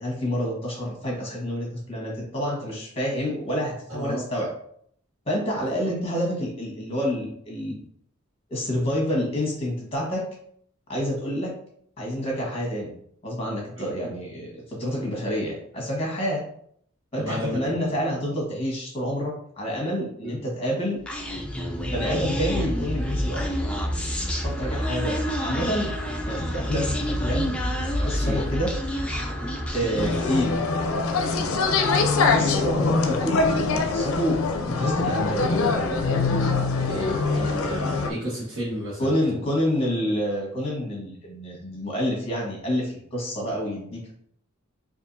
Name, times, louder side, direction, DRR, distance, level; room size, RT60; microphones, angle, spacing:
voice 1, 0.0-4.5 5.3-7.8 8.5-10.3 10.9-11.6 12.0-13.0 13.2-16.4 17.1-21.0 21.9-23.5 24.4-25.2 25.4-25.9 26.3-28.8 29.7-30.5 32.0-34.4 34.7-35.5 39.0-44.1, equal, 30° left, -2 dB, 1.3 m, -28 dB
voice 2, 3.9-4.2 14.0-14.1 17.2-17.8 20.2-20.3 27.9-28.4 30.0-30.1 32.5-32.6 36.8-39.1, equal, 80° right, -7 dB, 1.2 m, -32 dB
Human voice, 21.1-30.5, equal, 5° left, 0.5 m, -28 dB
sound 1, 30.0-38.1, left 3 dB, 75° left, 0.5 m, -23 dB
4.5 x 2.6 x 2.6 m, 0.65 s
head